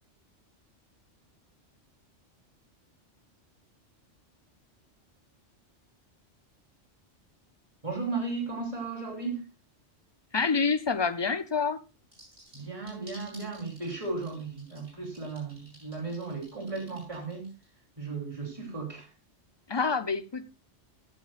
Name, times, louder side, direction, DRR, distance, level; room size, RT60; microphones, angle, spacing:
voice 1, 7.8-9.4 12.5-17.5 18.0-19.1, right 3 dB, 25° right, -1 dB, 3.3 m, -35 dB
voice 2, 10.3-11.8 19.7-20.5, left 5 dB, 30° left, 13 dB, 0.5 m, -27 dB
sound 1, 12.1-17.7, right 1 dB, 60° right, 6.9 m, -53 dB
15.0 x 9.5 x 2.4 m, 0.29 s
omnidirectional pair, 1.2 m